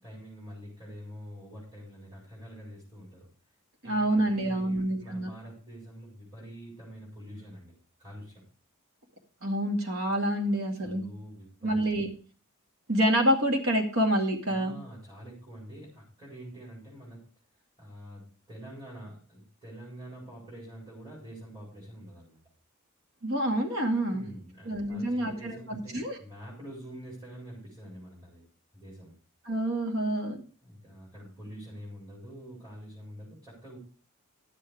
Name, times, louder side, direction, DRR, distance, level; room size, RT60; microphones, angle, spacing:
voice 1, 0.0-3.3 3.8-8.4 10.8-12.0 14.5-17.3 17.8-22.4 24.1-28.4 28.7-29.1 30.6-33.8, equal, 20° right, -7 dB, 4.7 m, -46 dB
voice 2, 3.8-5.3 9.4-11.0 11.6-12.1 12.9-14.7 23.2-24.3 24.7-26.2 29.5-30.4, right 1 dB, 80° right, 3 dB, 2.1 m, -27 dB
11.0 x 7.5 x 4.9 m, 0.40 s
head